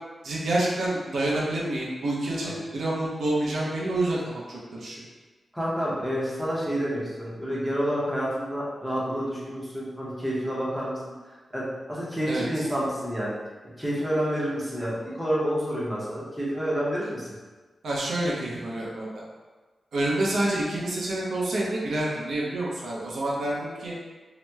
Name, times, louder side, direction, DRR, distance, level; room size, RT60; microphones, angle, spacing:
voice 1, 0.2-5.0 12.3-12.4 17.8-19.2 19.9-23.9, right 1 dB, 85° right, -5 dB, 0.6 m, -28 dB
voice 2, 5.5-10.9 11.5-13.3 13.8-17.3, equal, 5° right, -7 dB, 0.7 m, -29 dB
2.8 x 2.0 x 3.4 m, 1.3 s
wide cardioid pair, 130°, 0 cm